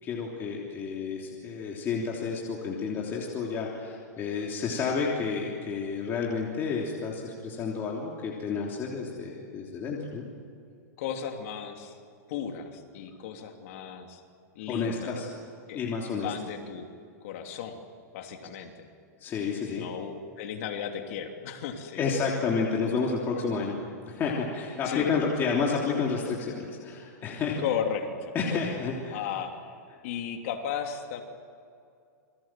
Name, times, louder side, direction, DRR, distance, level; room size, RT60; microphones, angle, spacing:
voice 1, 0.0-10.3 14.7-15.3 15.7-16.3 19.2-19.9 22.0-27.6 28.3-29.3, left 5 dB, 25° left, -2 dB, 3.3 m, -30 dB
voice 2, 11.0-12.0 12.3-14.2 14.5-15.2 15.7-15.8 16.2-16.9 17.2-17.8 18.1-18.9 19.6-20.1 20.4-22.0 23.6-23.7 24.8-25.5 27.6-28.7 29.1-29.5 30.0-31.2, left 8 dB, 50° left, 4 dB, 3.1 m, -35 dB
28.5 x 23.0 x 7.6 m, 2.4 s
supercardioid pair, 150°, 9 cm